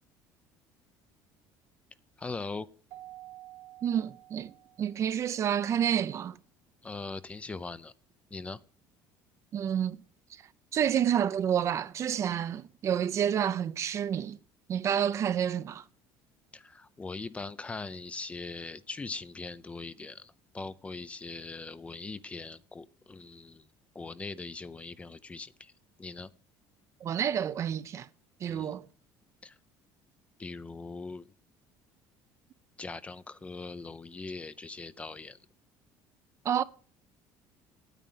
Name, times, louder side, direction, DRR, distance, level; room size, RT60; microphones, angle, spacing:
voice 1, 2.2-2.7 6.8-7.9 8.3-8.6 16.5-23.6 23.9-25.7 26.0-26.3 28.5-28.7 29.4-29.6 30.4-31.3 32.8-35.4, left 3 dB, 15° left, 0.5 m, -41 dB
Keyboard (musical), 2.9-5.2, right 15 dB, 85° right, 1.1 m, -50 dB
voice 2, 3.8-6.4 9.5-10.0 10.3-10.4 10.7-14.4 14.7-15.8 27.0-28.1 28.4-28.9 36.4-36.6, right 9 dB, 40° right, 0.6 m, -29 dB
9.1 x 9.0 x 6.7 m
cardioid pair, 140°, 8 cm